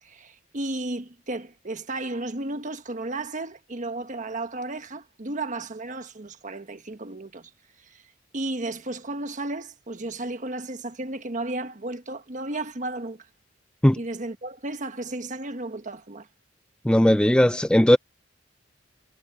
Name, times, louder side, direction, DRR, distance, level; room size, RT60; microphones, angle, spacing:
voice 1, 0.0-7.5 7.8-8.0 8.3-13.3 14.0-16.3, right 2 dB, 40° right, 1.4 m, -33 dB
voice 2, 16.8-18.0, equal, 5° left, 0.5 m, -17 dB
head